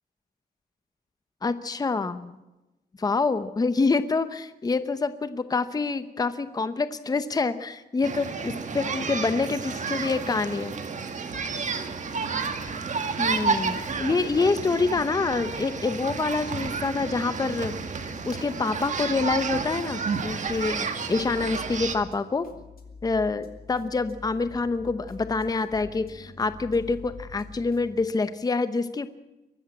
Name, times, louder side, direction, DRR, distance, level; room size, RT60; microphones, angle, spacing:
voice 1, 1.4-2.3 3.0-10.7 12.6-12.8 13.2-17.7 18.2-22.5 23.0-29.1, left 4 dB, 20° left, 11 dB, 0.8 m, -26 dB
sound 1, 8.0-22.0, right 5 dB, 45° right, 1.8 m, -31 dB
sound 2, 11.3-28.1, left 5 dB, 60° left, 3.0 m, -47 dB
23.0 x 13.5 x 8.5 m, 1.0 s
wide cardioid pair, 150°, 17 cm